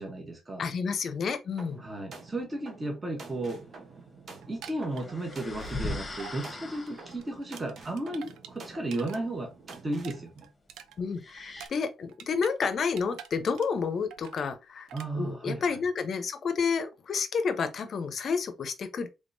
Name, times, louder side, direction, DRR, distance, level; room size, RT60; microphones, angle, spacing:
voice 1, 0.0-0.7 1.8-3.6 4.5-9.5 9.8-10.5 14.9-15.8, right 2 dB, 20° right, 1.1 m, -34 dB
voice 2, 0.6-1.8 11.0-14.9 15.1-19.1, left 5 dB, 50° left, 0.6 m, -30 dB
sound 1, 1.6-10.2, right 3 dB, 45° right, 0.9 m, -48 dB
sound 2, 4.4-5.9 6.2-6.4 6.7-9.2 9.5-12.6 12.8-13.8 14.1-14.5 14.9-15.1, right 9 dB, 90° right, 0.5 m, -48 dB
sound 3, 4.9-7.3 11.2-11.7, left 2 dB, 25° left, 1.0 m, -39 dB
3.5 x 3.2 x 2.6 m
cardioid pair, 120°, 0 cm